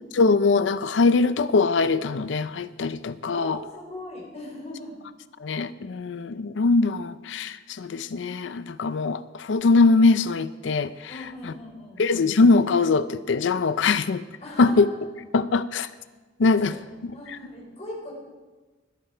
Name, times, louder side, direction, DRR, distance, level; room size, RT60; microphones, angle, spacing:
voice 1, 0.1-3.6 5.4-11.1 12.0-14.2 14.6-14.9 15.3-15.9 16.4-16.7, left 3 dB, 80° left, 14 dB, 0.5 m, -22 dB
voice 2, 3.3-5.0 11.1-12.0 14.4-15.0 16.5-18.1, left 1 dB, 40° left, -2 dB, 4.3 m, -39 dB
20.5 x 8.7 x 4.5 m, 1.3 s
head